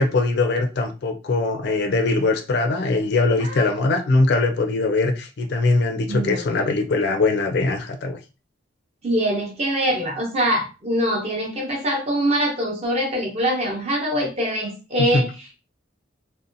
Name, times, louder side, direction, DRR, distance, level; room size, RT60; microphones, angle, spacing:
voice 1, 0.0-8.2 15.1-15.2, left 3 dB, 60° left, 5 dB, 0.4 m, -21 dB
voice 2, 3.4-3.7 6.1-6.7 9.0-15.5, equal, 35° right, 1 dB, 0.6 m, -24 dB
2.6 x 2.1 x 2.5 m, 0.32 s
head